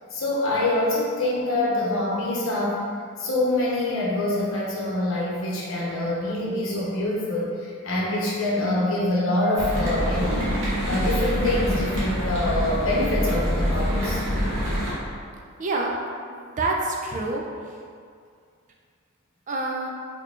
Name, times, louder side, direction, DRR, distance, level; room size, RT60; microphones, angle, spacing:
voice 1, 0.1-2.8 3.2-10.5 10.9-14.2, left 1 dB, 60° left, -5 dB, 0.8 m, -25 dB
sound 1, 9.6-14.9, equal, 55° right, 0.9 m, -25 dB
voice 2, 15.6-15.9 16.3-17.4 19.5-19.9, right 2 dB, 35° right, -1 dB, 0.3 m, -27 dB
4.6 x 2.9 x 2.4 m, 2.2 s
head